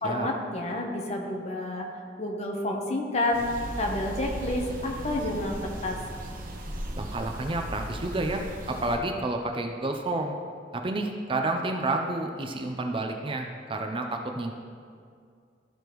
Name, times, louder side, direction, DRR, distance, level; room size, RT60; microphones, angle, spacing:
voice 1, 0.0-1.9 2.2-3.4 3.8-6.0, left 1 dB, 35° left, 1 dB, 1.0 m, -29 dB
sound 1, 3.3-9.0, right 1 dB, 50° right, 0.9 m, -37 dB
voice 2, 7.0-10.4 10.7-14.5, right 2 dB, 30° right, 3 dB, 0.5 m, -30 dB
13.5 x 5.0 x 3.1 m, 2.2 s
head